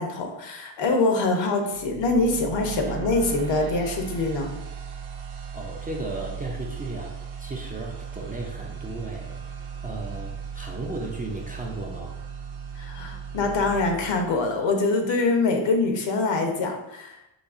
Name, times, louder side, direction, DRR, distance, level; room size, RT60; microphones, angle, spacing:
voice 1, 0.0-4.5 12.8-17.2, left 3 dB, 65° left, 3 dB, 0.8 m, -24 dB
sound 1, 1.7-14.8, right 7 dB, 80° right, 0.7 m, -37 dB
voice 2, 5.5-9.4 9.8-12.2, right 2 dB, 20° right, -2 dB, 0.4 m, -35 dB
4.0 x 2.6 x 2.4 m, 0.86 s
cardioid pair, 85°, 48 cm